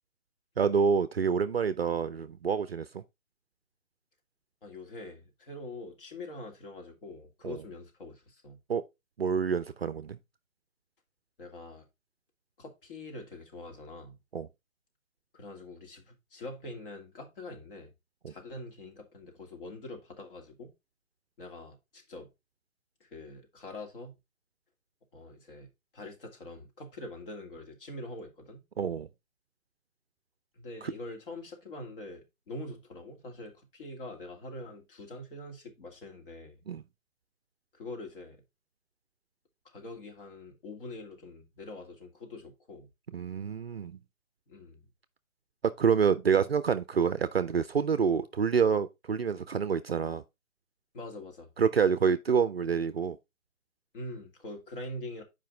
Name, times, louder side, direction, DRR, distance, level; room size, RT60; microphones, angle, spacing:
voice 1, 0.6-3.0 7.4-7.6 8.7-8.8 9.2-10.2 14.3-14.5 18.2-18.3 28.8-29.1 30.8-30.9 36.7-36.8 43.1-44.0 45.6-50.2 51.6-53.2, right 6 dB, 45° right, 0.5 m, -27 dB
voice 2, 4.6-8.6 11.4-11.9 12.6-14.2 15.3-17.9 18.3-20.7 21.4-22.3 23.0-24.2 25.1-28.6 30.5-36.6 37.7-38.4 39.6-42.9 44.5-44.9 50.9-51.5 53.9-55.2, left 2 dB, 40° left, 2.2 m, -44 dB
7.5 x 5.1 x 3.7 m
figure-of-eight pair, 155°, 41 cm